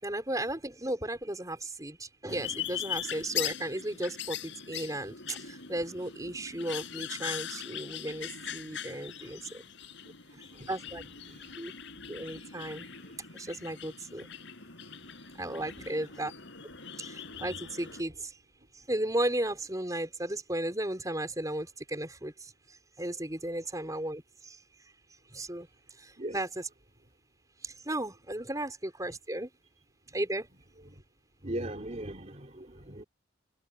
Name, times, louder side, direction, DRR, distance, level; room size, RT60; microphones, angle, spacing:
voice 1, 0.0-9.6 10.7-11.0 11.6-11.7 12.1-12.9 13.3-14.3 15.4-16.3 17.0-18.4 18.9-24.6 25.3-25.7 26.0-26.7 27.6-29.5 30.1-30.5, right 1 dB, 15° right, 5.1 m, -35 dB
sound 1, 2.3-18.0, left 9 dB, 65° left, 6.6 m, -41 dB
voice 2, 31.4-33.0, right 1 dB, 35° right, 3.8 m, -39 dB
head